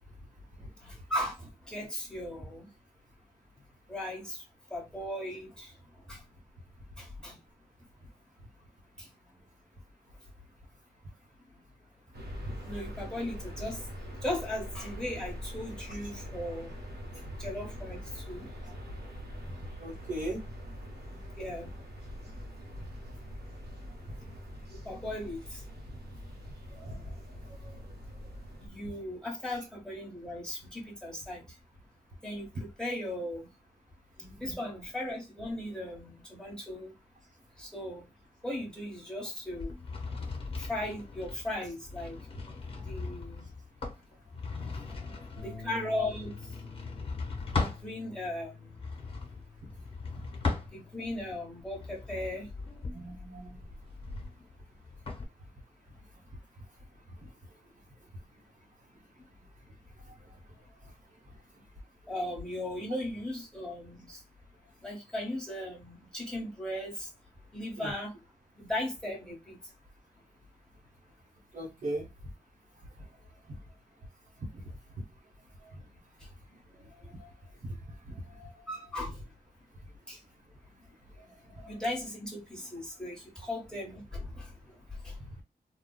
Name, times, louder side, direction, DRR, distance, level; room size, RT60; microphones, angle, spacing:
voice 1, 0.8-2.7 3.9-4.4 4.7-5.7 6.1-6.2 7.0-7.4 9.0-9.1 12.6-13.9 14.2-16.7 17.4-18.5 21.4-21.7 24.8-25.6 28.6-31.4 32.2-33.5 34.4-36.9 37.6-38.0 38.4-39.7 40.6-42.2 42.7-43.5 45.4-46.3 47.6-48.7 50.7-52.9 62.1-64.2 64.8-67.1 67.5-68.1 68.6-69.6 78.7-79.1 80.1-80.2 81.7-84.5 85.0-85.1, left 1 dB, 5° left, 1.5 m, -37 dB
sound 1, 12.1-28.7, equal, 85° right, 1.1 m, -43 dB
voice 2, 19.8-20.4 24.2-24.3 26.8-27.8 34.2-34.7 42.7-42.9 44.9-45.6 47.5-47.6 52.9-53.6 57.2-57.3 60.1-60.4 60.8-60.9 67.8-67.9 71.5-72.1 73.0-73.1 73.5-73.6 74.4-74.6 75.6-75.8 76.8-77.3 77.6-78.6 81.2-81.8, right 1 dB, 45° right, 1.1 m, -42 dB
sound 2, 39.5-47.9 48.7-51.1 51.6-55.3, left 4 dB, 35° left, 1.3 m, -38 dB
Bass guitar, 45.4-51.6, left 4 dB, 75° left, 0.7 m, -49 dB
3.8 x 2.3 x 2.2 m
wide cardioid pair, 145°, 17 cm